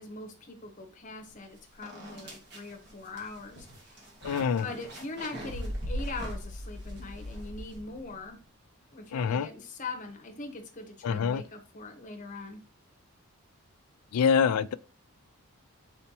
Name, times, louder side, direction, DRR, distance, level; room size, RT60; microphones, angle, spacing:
voice 1, 0.0-3.7 4.6-8.4 8.9-12.6, left 3 dB, 35° left, 0.9 m, -41 dB
sound 1, 1.3-1.4 1.8-8.2, equal, 50° right, 1.4 m, -39 dB
voice 2, 4.2-4.6 9.1-9.5 11.0-11.4 14.1-14.7, left 6 dB, 90° left, 0.4 m, -25 dB
4.3 x 4.2 x 2.7 m
head